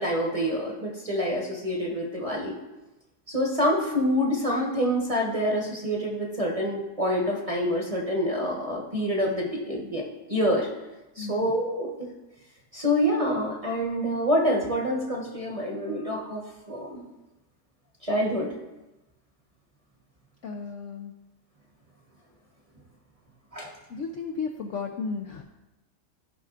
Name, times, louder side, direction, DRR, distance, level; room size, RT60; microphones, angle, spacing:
voice 1, 0.0-2.5 3.3-10.0 10.3-10.7 11.2-11.9 12.7-17.0 18.0-18.5 23.5-23.7, equal, 25° right, -2 dB, 1.0 m, -26 dB
voice 2, 11.2-11.6 20.4-21.1 23.9-25.4, left 5 dB, 65° left, 3 dB, 0.8 m, -34 dB
14.5 x 5.6 x 2.5 m, 1.0 s
omnidirectional pair, 1.8 m